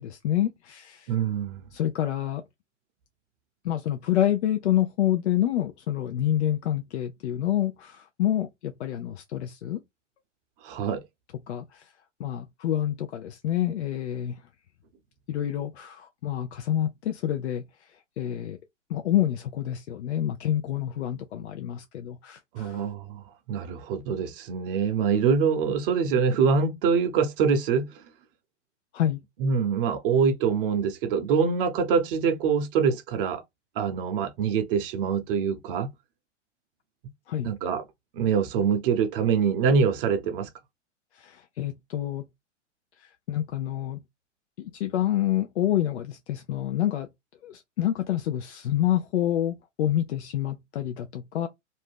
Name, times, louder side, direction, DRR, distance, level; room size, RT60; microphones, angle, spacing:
voice 1, 0.0-1.1 1.7-2.4 3.6-9.8 11.5-11.9 12.2-14.4 15.3-18.6 18.9-22.9 28.9-29.2 37.3-37.5 41.1-42.2 43.0-44.0 44.6-47.1 47.4-51.5, left 12 dB, 65° left, 0.5 m, -28 dB
voice 2, 1.1-1.6 10.6-11.0 22.5-23.2 23.5-27.9 29.4-33.4 33.8-35.9 37.4-37.8 38.1-40.5, right 6 dB, 45° right, 0.8 m, -24 dB
2.7 x 2.2 x 3.4 m
hypercardioid pair, 110°, 37 cm